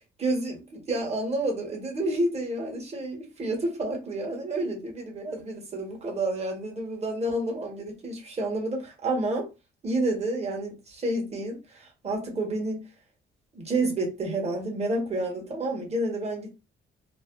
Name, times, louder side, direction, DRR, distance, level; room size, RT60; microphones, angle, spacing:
voice 1, 0.2-9.5 9.8-12.9 13.5-16.6, right 2 dB, 35° right, 1.2 m, -29 dB
3.2 x 2.1 x 2.3 m
cardioid pair, 90°, 20 cm